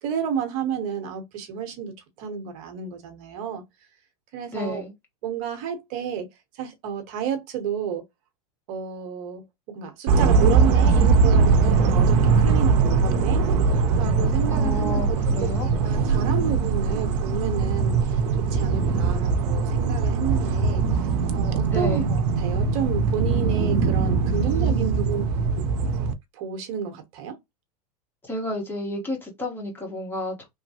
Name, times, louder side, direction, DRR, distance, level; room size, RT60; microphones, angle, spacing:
voice 1, 0.0-3.6 4.3-4.8 5.2-6.3 6.5-8.0 8.7-13.5 13.9-25.2 25.6-25.7 26.3-27.4, right 7 dB, 55° right, 0.9 m, -31 dB
voice 2, 4.5-4.9 14.5-15.7 21.7-22.1 24.4-25.2 28.2-30.5, left 1 dB, 10° left, 1.2 m, -32 dB
sound 1, 10.1-26.1, right 4 dB, 70° right, 0.6 m, -21 dB
3.1 x 2.1 x 2.8 m
hypercardioid pair, 120°, 21 cm